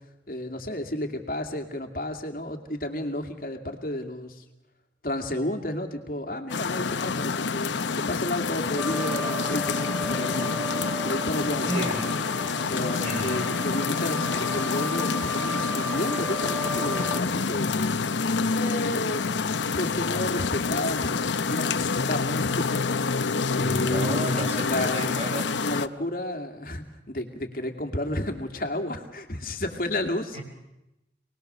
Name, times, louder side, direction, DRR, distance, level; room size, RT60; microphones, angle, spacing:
voice 1, 0.3-4.4 5.0-10.5 11.0-12.3 12.7-19.2 19.7-23.1 23.6-24.3 24.5-25.1 25.6-30.4, left 1 dB, 50° left, 5 dB, 2.4 m, -32 dB
sound 1, 6.5-25.9, left 4 dB, 90° left, 0.8 m, -27 dB
sound 2, 8.8-17.2, equal, 5° right, 2.4 m, -34 dB
voice 2, 11.6-12.2 13.0-13.4 23.6-25.6 30.3-30.4, equal, 35° right, 1 dB, 5.1 m, -32 dB
28.0 x 20.0 x 6.8 m, 0.94 s
head